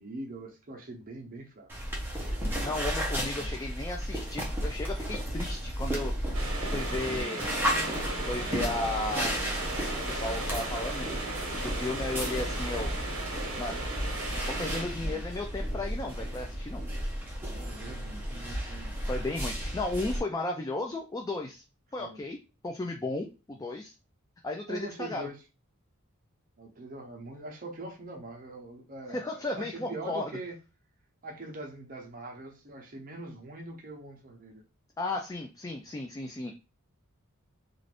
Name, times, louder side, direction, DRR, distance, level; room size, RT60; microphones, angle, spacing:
voice 1, 0.0-1.7 3.4-3.5 6.8-7.6 14.8-15.2 17.5-19.0 22.0-22.2 24.7-25.4 26.6-30.5 31.2-34.6, right 2 dB, 40° right, 1 dB, 0.7 m, -43 dB
sound 1, 1.7-20.2, equal, 10° right, 0.7 m, -33 dB
voice 2, 2.6-6.1 6.7-7.4 8.3-9.3 10.1-11.1 11.4-12.9 13.6-13.8 14.4-16.8 19.1-21.6 21.9-22.4 22.6-23.9 24.4-25.3 29.1-30.3 35.0-36.5, left 2 dB, 15° left, 2 dB, 0.3 m, -34 dB
sound 2, 6.3-14.8, right 2 dB, 70° right, 0.9 m, -36 dB
2.5 x 2.4 x 3.3 m, 0.30 s
head